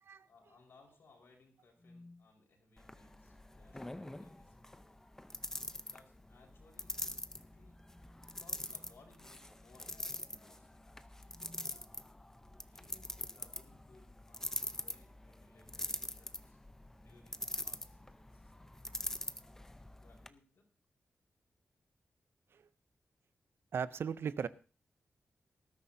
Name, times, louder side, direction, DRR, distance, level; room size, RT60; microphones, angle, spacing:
voice 1, 0.2-5.1 5.9-7.2 7.5-11.7 12.7-16.6 16.9-18.5 20.0-20.6, left 3 dB, 75° left, 1 dB, 4.7 m, -65 dB
sound 1, 1.8-2.2 3.6-4.1 6.3-10.5 11.2-11.8, left 1 dB, 30° left, 1.9 m, -62 dB
sound 2, 2.8-20.3, left 1 dB, 10° left, 0.7 m, -44 dB
voice 2, 23.7-24.5, right 7 dB, 75° right, 15 dB, 0.6 m, -37 dB
19.5 x 13.0 x 2.7 m, 0.35 s
wide cardioid pair, 105°, 4 cm